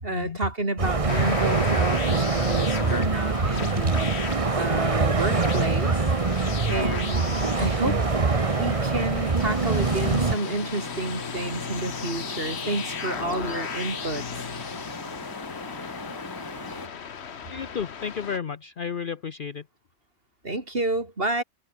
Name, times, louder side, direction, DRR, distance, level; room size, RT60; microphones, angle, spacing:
voice 1, 0.0-6.0 6.7-8.0 8.6-14.4 20.4-21.4, right 2 dB, 55° right, 4.0 m, -29 dB
sound 1, 0.8-10.4, right 4 dB, 30° right, 1.2 m, -24 dB
sound 2, 1.1-18.4, left 7 dB, 70° left, 1.4 m, -36 dB
sound 3, 9.3-16.9, left 2 dB, 20° left, 1.5 m, -38 dB
voice 2, 17.5-19.6, left 6 dB, 50° left, 1.0 m, -32 dB
omnidirectional pair, 1.2 m